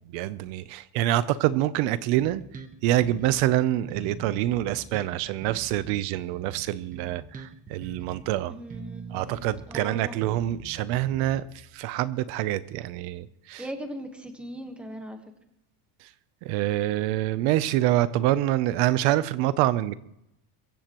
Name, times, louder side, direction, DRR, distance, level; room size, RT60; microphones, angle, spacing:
voice 1, 0.1-2.4 2.8-8.5 9.1-13.6 16.0-16.1 16.4-19.9, right 14 dB, 65° right, 15 dB, 0.7 m, -26 dB
Bass guitar, 2.1-3.6 3.9-8.4 8.7-11.7, right 5 dB, 15° right, 1.0 m, -43 dB
voice 2, 8.5-9.4 9.7-10.2 13.6-15.2, right 1 dB, ahead, 4 dB, 1.3 m, -38 dB
22.5 x 15.0 x 3.0 m, 0.83 s
cardioid pair, 170°, 47 cm